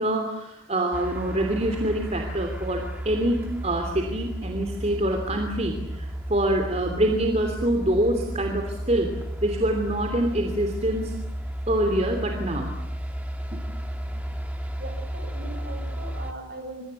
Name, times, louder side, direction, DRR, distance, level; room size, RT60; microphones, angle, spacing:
voice 1, 0.0-9.1 9.4-11.1 11.7-12.7 13.5-13.6, right 1 dB, 35° right, 4 dB, 3.1 m, -25 dB
sound 1, 0.9-16.3, right 1 dB, 5° right, 2.2 m, -33 dB
voice 2, 13.9-14.3 14.8-16.9, right 2 dB, 55° right, 6 dB, 6.3 m, -40 dB
25.5 x 23.5 x 8.4 m, 0.83 s
head